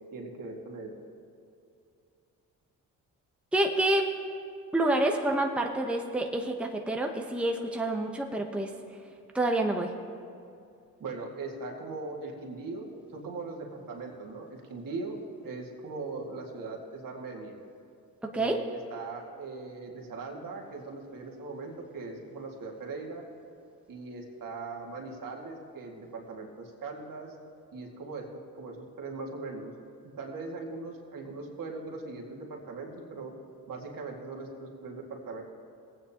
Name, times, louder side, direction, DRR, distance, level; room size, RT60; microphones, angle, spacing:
voice 1, 0.1-0.9 11.0-15.2 15.4-17.6 18.3-23.2 23.9-27.3 27.7-29.7 30.0-33.3 33.7-35.4, right 3 dB, 60° right, 0 dB, 2.1 m, -40 dB
voice 2, 3.5-4.1 4.7-8.7 9.3-9.9 18.3-18.6, right 1 dB, 5° right, 2 dB, 0.9 m, -27 dB
18.5 x 9.0 x 2.9 m, 2.5 s
supercardioid pair, 65°, 37 cm